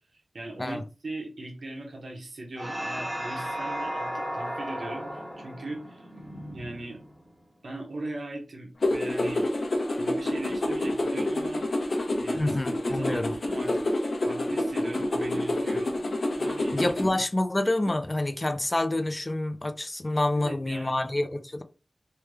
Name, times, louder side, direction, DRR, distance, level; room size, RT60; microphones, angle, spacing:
voice 1, 0.1-6.1 6.5-7.0 7.6-9.5 10.0-11.7 12.2-13.8 14.2-16.0 16.3-16.8 17.1-17.2 20.3-21.0, right 2 dB, 70° right, 0.9 m, -39 dB
sound 1, 2.6-7.4, equal, 20° right, 1.5 m, -35 dB
sound 2, 8.8-17.1, left 1 dB, 55° left, 0.7 m, -28 dB
voice 2, 12.3-13.3 16.7-21.6, left 1 dB, 25° left, 0.4 m, -27 dB
3.3 x 2.2 x 3.1 m
wide cardioid pair, 85°, 0 cm